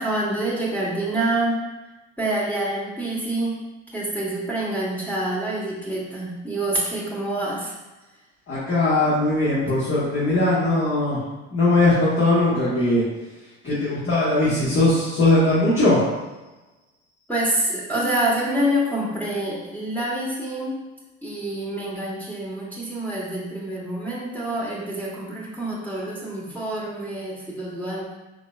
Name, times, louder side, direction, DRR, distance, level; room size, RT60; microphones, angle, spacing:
voice 1, 0.0-1.6 2.2-3.6 3.9-7.7 9.6-9.7 13.7-13.9 17.3-20.8 21.2-28.1, right 1 dB, 5° left, -6 dB, 1.2 m, -27 dB
voice 2, 8.5-11.2 11.5-13.0 13.6-16.0, left 2 dB, 35° left, -9 dB, 1.4 m, -20 dB
4.6 x 2.9 x 2.3 m, 1.1 s
hypercardioid pair, 70°, 33 cm